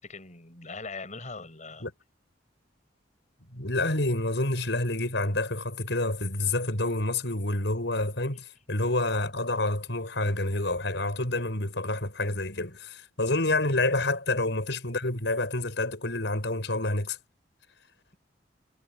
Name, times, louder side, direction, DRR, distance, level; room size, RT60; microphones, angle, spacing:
voice 1, 0.0-1.8, left 3 dB, 45° left, 5.4 m, -41 dB
voice 2, 3.5-17.2, left 2 dB, 70° left, 7.4 m, -28 dB
head